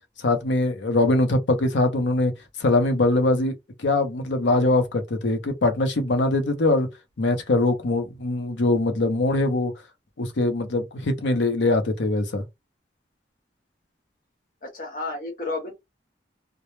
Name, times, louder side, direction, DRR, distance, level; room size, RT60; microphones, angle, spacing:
voice 1, 0.2-2.3 2.6-3.5 3.8-6.9 7.2-9.7 10.2-12.4, left 2 dB, 85° left, 0.6 m, -22 dB
voice 2, 14.6-15.7, left 3 dB, 45° left, 0.9 m, -31 dB
2.1 x 2.0 x 3.0 m
head